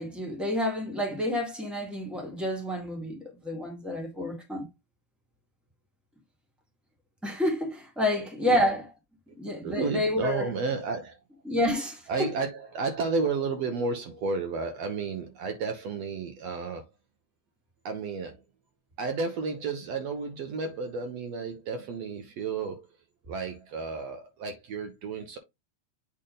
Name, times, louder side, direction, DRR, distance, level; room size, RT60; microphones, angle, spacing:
voice 1, 0.0-4.6 7.2-8.8 9.4-10.5 11.4-12.3, left 1 dB, ahead, 0.8 m, -29 dB
voice 2, 9.6-11.2 12.1-16.9 17.9-18.4 19.0-22.9 23.3-25.4, right 4 dB, 65° right, 1.8 m, -32 dB
8.6 x 3.5 x 3.8 m
omnidirectional pair, 3.6 m